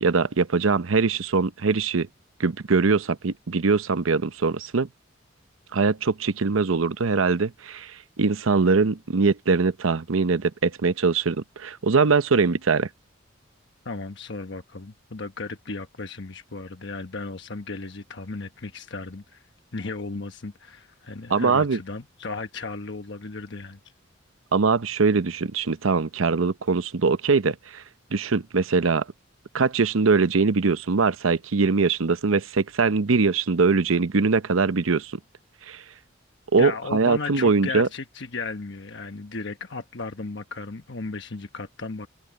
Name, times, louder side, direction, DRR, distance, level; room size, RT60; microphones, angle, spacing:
voice 1, 0.0-2.1 2.4-4.9 5.7-7.9 8.2-12.9 21.3-21.8 24.5-27.8 28.1-29.0 29.5-35.2 35.7-35.8 36.5-37.9, right 4 dB, 90° right, 0.8 m, -22 dB
voice 2, 13.8-19.5 19.7-23.8 36.6-42.1, left 3 dB, 60° left, 1.1 m, -35 dB
head